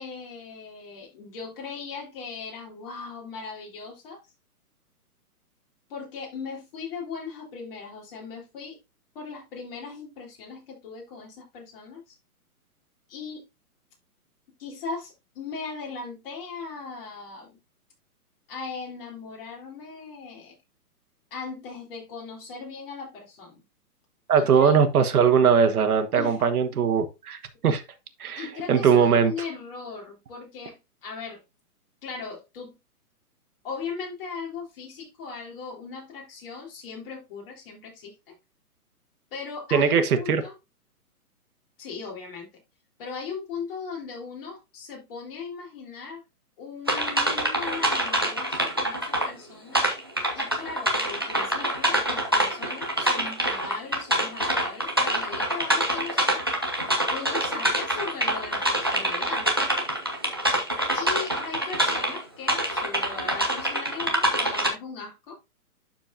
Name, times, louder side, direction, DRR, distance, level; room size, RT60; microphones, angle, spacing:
voice 1, 0.0-4.2 5.9-8.8 9.2-12.2 13.1-13.4 14.6-17.5 18.5-20.6 21.3-23.6 24.4-24.8 26.1-26.5 28.4-30.8 31.0-31.4 32.0-32.8 33.6-38.4 39.3-40.5 41.8-42.5 43.0-46.2 46.6-49.8 50.3-56.5 57.1-59.5 60.9-65.4, left 5 dB, 35° left, 3.6 m, -38 dB
voice 2, 24.3-27.8 28.2-29.3 39.7-40.4, right 6 dB, 70° right, 1.5 m, -20 dB
sound 1, 46.9-49.3 49.7-62.2 62.5-64.7, right 1 dB, 20° right, 0.4 m, -25 dB
11.5 x 4.5 x 2.6 m
hypercardioid pair, 155°, 46 cm